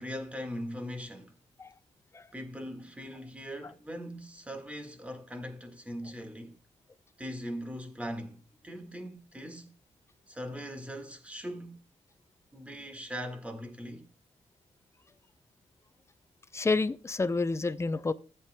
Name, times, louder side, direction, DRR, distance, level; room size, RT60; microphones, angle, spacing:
voice 1, 0.0-1.3 2.3-6.6 7.2-9.7 10.3-11.8 12.5-14.0, equal, 10° right, 1.7 m, -40 dB
voice 2, 16.5-18.1, left 3 dB, 20° left, 0.6 m, -29 dB
15.5 x 8.4 x 2.2 m
cardioid pair, 105°, 13 cm